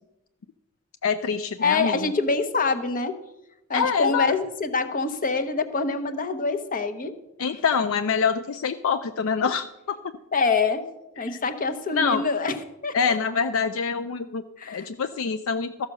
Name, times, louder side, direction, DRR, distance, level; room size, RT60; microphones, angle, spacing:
voice 1, 1.0-2.1 3.7-4.3 7.4-10.0 11.3-11.4 11.9-12.2 12.9-15.9, left 6 dB, 65° left, 10 dB, 0.4 m, -25 dB
voice 2, 1.6-3.1 3.7-7.1 10.3-10.8 11.2-12.6 12.8-13.2 14.6-14.9, left 4 dB, 40° left, 10 dB, 0.9 m, -25 dB
13.5 x 6.5 x 6.0 m, 0.95 s
head